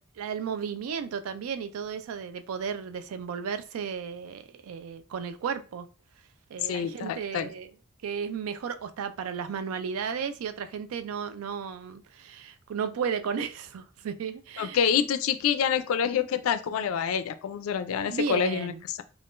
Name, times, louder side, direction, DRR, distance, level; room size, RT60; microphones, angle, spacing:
voice 1, 0.2-5.9 6.5-7.7 8.0-14.9 18.1-18.8, right 6 dB, 85° right, 0.4 m, -34 dB
voice 2, 6.6-7.5 14.6-19.0, left 7 dB, 75° left, 0.3 m, -27 dB
3.6 x 2.3 x 2.4 m
head